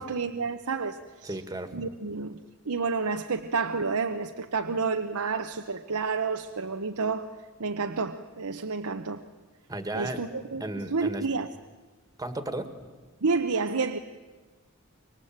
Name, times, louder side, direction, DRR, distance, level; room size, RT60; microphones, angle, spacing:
voice 1, 0.0-1.4 1.7-2.4 2.7-7.3 7.6-9.2 9.9-11.5 13.2-14.0, right 4 dB, 90° right, 1.0 m, -30 dB
voice 2, 1.2-1.8 9.7-10.2 10.6-11.3 12.2-12.7, right 2 dB, 15° right, 1.8 m, -34 dB
25.5 x 23.0 x 8.8 m
head